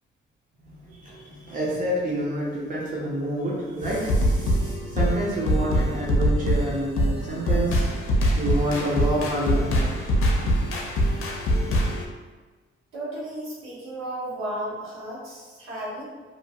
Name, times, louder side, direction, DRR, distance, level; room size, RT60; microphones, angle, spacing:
voice 1, 0.9-9.9, right 1 dB, 40° right, -6 dB, 0.6 m, -28 dB
sound 1, 3.8-12.0, equal, 85° left, 0.5 m, -23 dB
voice 2, 12.9-16.0, right 1 dB, 85° right, -7 dB, 1.1 m, -34 dB
2.7 x 2.3 x 2.8 m, 1.3 s
wide cardioid pair, 140°, 21 cm